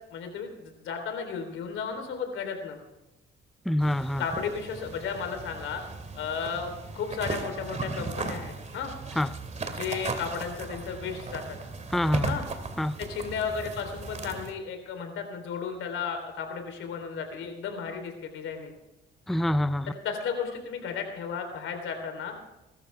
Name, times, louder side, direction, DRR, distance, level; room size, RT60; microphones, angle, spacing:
voice 1, 0.1-2.8 4.2-5.8 6.2-8.9 9.7-11.6 12.2-12.4 13.0-18.7 19.9-22.3, left 6 dB, 85° left, 6 dB, 3.6 m, -34 dB
voice 2, 3.7-4.2 9.2-9.3 11.9-12.3 12.8-13.0 19.3-19.9, left 1 dB, ahead, 14 dB, 0.5 m, -26 dB
sound 1, 3.8-14.5, right 4 dB, 35° right, 2.4 m, -37 dB
21.5 x 13.0 x 3.5 m, 0.97 s
cardioid pair, 90°, 20 cm